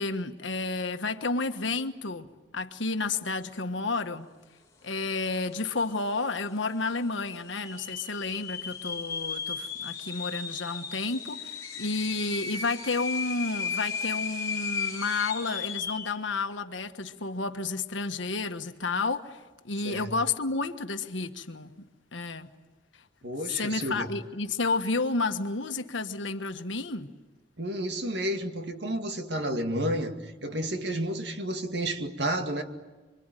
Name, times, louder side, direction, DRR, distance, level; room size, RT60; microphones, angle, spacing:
voice 1, 0.0-2.3 2.5-4.3 4.8-22.5 23.4-27.1, left 3 dB, 80° left, 1.4 m, -31 dB
sound 1, 5.2-5.3 5.5-6.1 6.6-6.7 7.4-16.2, left 5 dB, 15° left, 2.6 m, -35 dB
voice 2, 23.2-24.1 27.6-32.6, right 1 dB, 60° right, 2.2 m, -31 dB
26.0 x 25.0 x 9.1 m
head